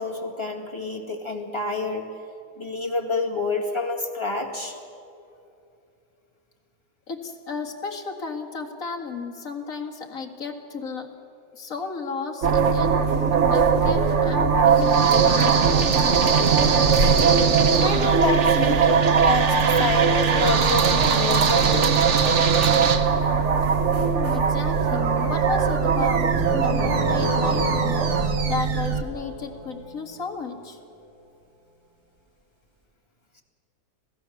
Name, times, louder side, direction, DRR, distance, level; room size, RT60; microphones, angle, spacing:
voice 1, 0.0-2.1 2.6-4.8 17.8-22.0 28.4-28.5, left 3 dB, 15° left, 1 dB, 2.1 m, -28 dB
voice 2, 7.1-11.1 11.5-13.0 13.5-15.6 23.9-30.8, left 4 dB, 50° left, 3 dB, 2.3 m, -33 dB
sound 1, 12.4-29.0, right 6 dB, 45° right, 1.2 m, -20 dB
sound 2, 26.3-30.3, left 1 dB, 20° right, 5.8 m, -32 dB
26.5 x 17.0 x 7.1 m, 2.7 s
omnidirectional pair, 1.9 m